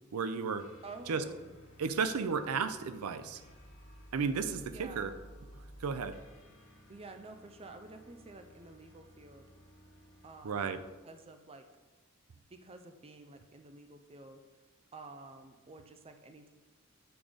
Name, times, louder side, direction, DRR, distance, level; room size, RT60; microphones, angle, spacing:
voice 1, 0.1-0.7 1.1-1.2 1.8-3.4 4.1-5.1 5.8-6.2 10.4-10.8, right 5 dB, 85° right, 11 dB, 0.5 m, -33 dB
sound 1, 0.6-10.9, equal, 60° left, 1.4 m, -56 dB
voice 2, 0.8-1.5 4.7-5.2 6.9-9.5 10.2-10.8 11.0-11.6 12.3-14.4 14.9-16.5, right 3 dB, 25° right, 7 dB, 0.4 m, -50 dB
8.0 x 3.7 x 5.0 m, 1.2 s
head